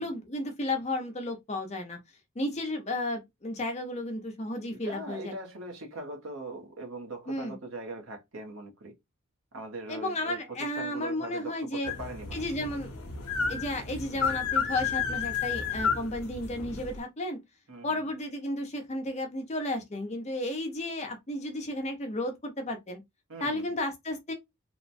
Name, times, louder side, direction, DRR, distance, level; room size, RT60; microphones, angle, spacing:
voice 1, 0.0-2.0 2.4-5.3 7.3-7.6 9.9-11.9 12.3-12.9 13.5-17.4 17.8-23.0 23.4-24.3, left 1 dB, 30° left, 0.6 m, -33 dB
voice 2, 4.8-8.9 9.5-12.4 17.7-18.0 23.3-23.7, right 2 dB, 65° right, 0.9 m, -41 dB
sound 1, 11.8-17.0, left 6 dB, 80° left, 0.6 m, -32 dB
2.9 x 2.2 x 2.5 m
head